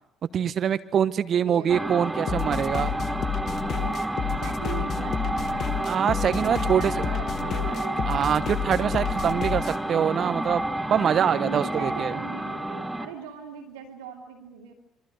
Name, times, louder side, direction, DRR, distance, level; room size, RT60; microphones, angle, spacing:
voice 1, 0.3-2.9 5.8-6.9 8.1-10.6 10.9-12.1, right 8 dB, 45° right, 13 dB, 1.0 m, -24 dB
voice 2, 1.3-2.4 3.6-4.1 4.4-6.1 6.5-8.1 11.1-14.7, right 7 dB, 75° right, -2 dB, 2.6 m, -40 dB
sound 1, 1.7-13.2, right 1 dB, 5° right, 2.7 m, -30 dB
sound 2, 2.3-9.8, left 8 dB, 50° left, 1.4 m, -31 dB
27.5 x 25.5 x 6.4 m, 0.86 s
figure-of-eight pair, 50°, 0 cm